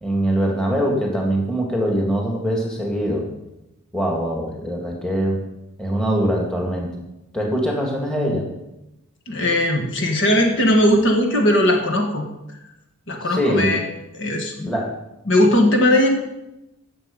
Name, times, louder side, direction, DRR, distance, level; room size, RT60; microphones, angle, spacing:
voice 1, 0.0-3.3 3.9-5.4 5.8-6.9 7.3-8.5 13.3-13.7 14.7-14.9, equal, 5° left, -1 dB, 2.1 m, -22 dB
voice 2, 9.3-12.3 13.1-13.8 14.1-14.7 15.3-16.1, left 1 dB, 55° left, 2 dB, 1.9 m, -18 dB
15.5 x 7.1 x 5.3 m, 0.92 s
head